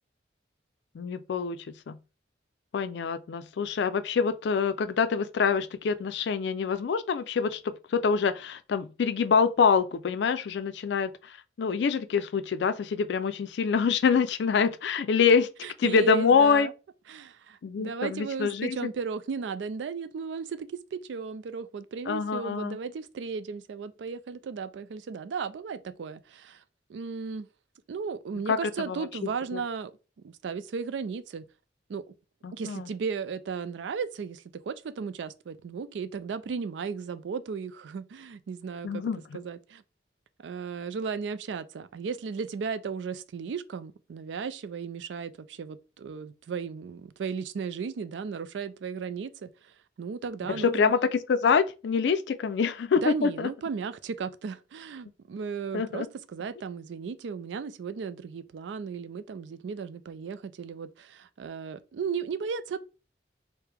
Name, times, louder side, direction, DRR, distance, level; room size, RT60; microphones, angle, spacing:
voice 1, 0.9-2.0 2.7-15.5 15.8-16.7 17.6-18.8 22.1-22.8 28.5-29.1 29.5-29.6 32.4-32.9 38.8-39.4 50.5-53.5 55.7-56.1, left 6 dB, 70° left, 0.4 m, -26 dB
voice 2, 15.6-16.7 17.1-26.6 26.9-27.5 27.9-29.9 30.2-31.4 31.9-32.0 32.5-39.0 39.3-39.8 40.4-49.7 50.0-50.9 53.0-62.8, right 5 dB, 80° right, 0.4 m, -35 dB
4.7 x 2.1 x 3.3 m
head